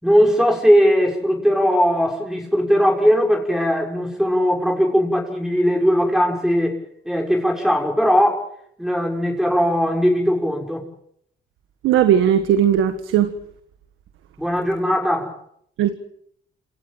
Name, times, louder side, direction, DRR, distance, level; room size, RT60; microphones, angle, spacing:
voice 1, 0.0-6.8 7.0-8.5 8.8-10.8 14.4-15.3, equal, ahead, 6.3 m, -19 dB
voice 2, 11.8-13.3 15.8-15.9, right 9 dB, 85° right, 1.7 m, -17 dB
27.5 x 17.5 x 7.7 m
cardioid pair, 90°, 20 cm